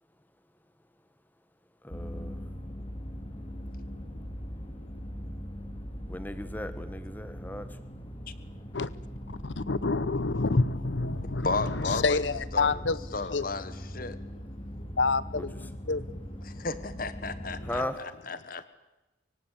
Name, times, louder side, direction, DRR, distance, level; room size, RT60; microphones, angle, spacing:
voice 1, 1.8-2.4 6.1-7.8 15.4-15.5 17.6-18.0, left 1 dB, 10° left, 11 dB, 1.5 m, -36 dB
sound 1, 1.9-17.9, equal, 30° left, 2.6 m, -40 dB
voice 2, 9.4-13.4 15.0-16.1, left 3 dB, 90° left, 18 dB, 0.9 m, -28 dB
voice 3, 11.3-12.2 12.5-12.8 13.1-14.2 16.4-18.7, left 3 dB, 50° left, 13 dB, 1.4 m, -34 dB
24.0 x 24.0 x 8.4 m, 1.0 s
head